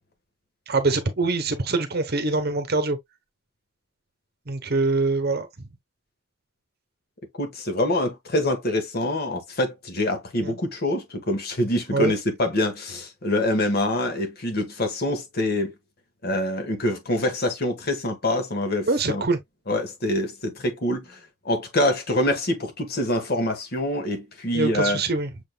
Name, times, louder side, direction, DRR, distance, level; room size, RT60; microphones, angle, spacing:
voice 1, 0.7-3.0 4.5-5.5 10.4-10.6 11.9-12.1 18.9-19.4 24.5-25.3, right 3 dB, 45° right, 0.9 m, -24 dB
voice 2, 7.4-15.7 16.2-19.2 19.7-21.2 21.4-25.0, left 1 dB, 45° left, 1.3 m, -25 dB
6.5 x 3.6 x 2.2 m
head